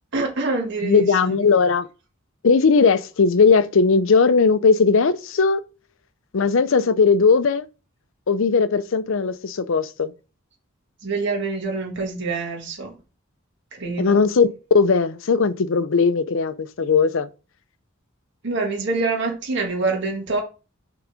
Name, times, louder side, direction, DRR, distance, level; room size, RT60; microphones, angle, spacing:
voice 1, 0.1-1.4 11.0-12.9 13.7-14.2 18.4-20.4, right 3 dB, 55° right, 1.7 m, -25 dB
voice 2, 0.8-1.9 2.4-5.6 6.3-7.7 8.3-10.1 14.0-14.5 14.7-17.3, left 5 dB, 65° left, 0.5 m, -18 dB
6.0 x 3.9 x 5.0 m
head